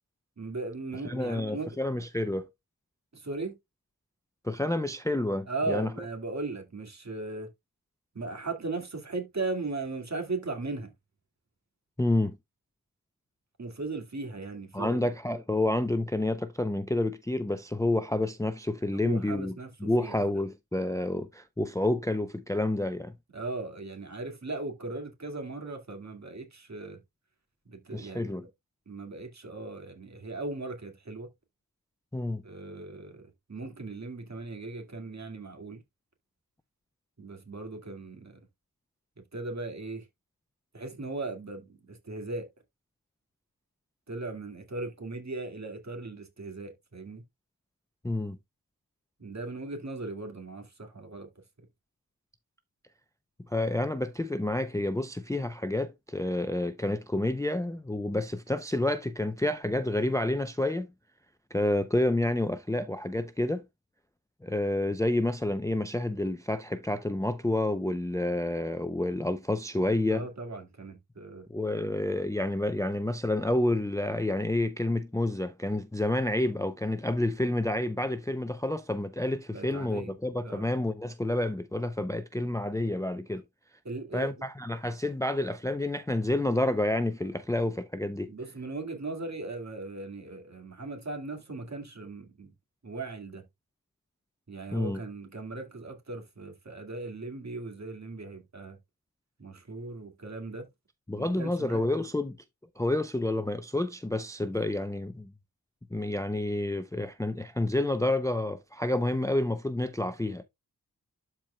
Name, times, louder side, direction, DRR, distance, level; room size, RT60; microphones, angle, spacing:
voice 1, 0.4-1.8 3.1-3.6 5.5-7.5 8.1-10.9 13.6-15.1 18.9-20.2 23.3-27.0 27.7-28.5 28.9-31.3 32.4-35.8 37.2-38.4 39.2-40.1 40.7-42.5 44.1-47.2 49.2-51.3 70.1-71.5 79.5-80.1 80.4-80.7 83.8-84.4 88.3-92.5 92.8-93.5 94.5-98.8 99.4-100.7 101.2-102.0, right 3 dB, 45° right, 2.1 m, -38 dB
voice 2, 1.0-2.5 4.4-5.9 12.0-12.4 14.7-19.5 19.8-23.1 27.9-28.5 32.1-32.4 48.0-48.4 53.5-60.9 61.5-63.6 64.4-70.2 71.5-83.4 84.1-88.3 94.7-95.0 101.1-102.4 102.8-105.3 105.9-110.4, left 1 dB, 10° left, 0.5 m, -29 dB
12.0 x 4.5 x 2.2 m
wide cardioid pair, 95°, 37 cm